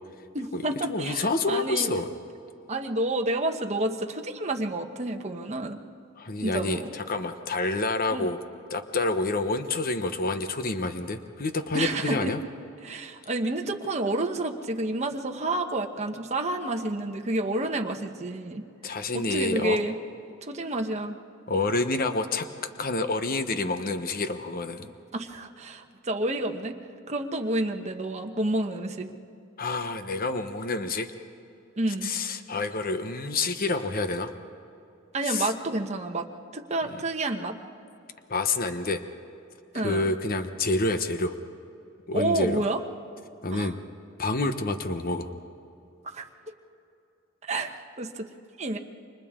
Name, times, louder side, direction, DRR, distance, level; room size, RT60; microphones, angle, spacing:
voice 1, 0.3-1.9 2.7-5.8 6.4-6.9 8.1-8.3 11.7-12.3 12.8-18.6 19.1-20.0 20.5-21.2 25.1-26.7 27.1-29.1 31.8-32.1 35.1-36.3 36.5-37.5 39.7-40.1 42.1-42.8 43.5-43.7 46.1-46.2 47.5-48.3 48.6-48.8, right 2 dB, 35° right, 3 dB, 1.2 m, -29 dB
voice 2, 0.9-2.1 6.2-8.4 8.7-12.4 18.8-19.8 21.5-22.5 22.8-24.9 29.6-31.1 32.0-34.3 35.2-35.5 36.8-37.0 38.3-39.0 39.8-41.3 42.1-42.6 43.4-43.8 44.2-45.3, left 2 dB, 45° left, 8 dB, 1.0 m, -28 dB
29.5 x 25.5 x 3.7 m, 2.7 s
head